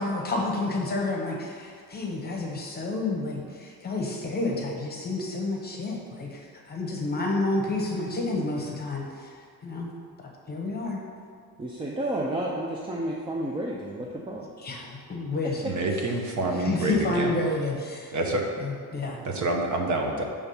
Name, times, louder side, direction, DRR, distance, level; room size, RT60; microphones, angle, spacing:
voice 1, 0.0-9.3 9.6-9.9 10.5-11.0 14.6-15.6 16.6-18.2 18.6-19.2, left 2 dB, 25° left, 0 dB, 0.9 m, -30 dB
voice 2, 11.6-14.5, right 1 dB, 15° right, -2 dB, 0.3 m, -31 dB
voice 3, 15.6-17.3 18.1-18.4 19.2-20.2, right 2 dB, 50° right, 2 dB, 0.9 m, -27 dB
7.1 x 3.5 x 5.4 m, 2.1 s
cardioid pair, 155°, 38 cm